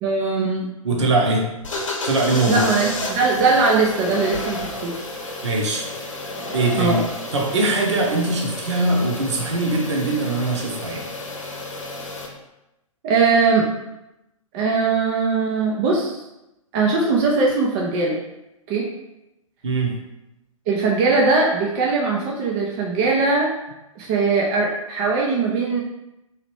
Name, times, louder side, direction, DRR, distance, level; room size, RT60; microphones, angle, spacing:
voice 1, 0.0-0.7 2.5-5.1 6.8-7.0 13.0-13.7 14.5-16.2 16.7-18.2 18.7-18.9 20.7-23.5 24.0-25.8, right 4 dB, 20° right, -2 dB, 0.3 m, -20 dB
voice 2, 0.8-1.5 2.0-2.6 5.4-5.9 6.5-7.0 7.3-11.1 19.6-19.9, right 2 dB, 55° right, 0 dB, 0.8 m, -21 dB
sound 1, 1.6-12.3, left 2 dB, 60° left, 0.8 m, -31 dB
3.0 x 2.8 x 3.0 m, 0.94 s
figure-of-eight pair, 115°, 18 cm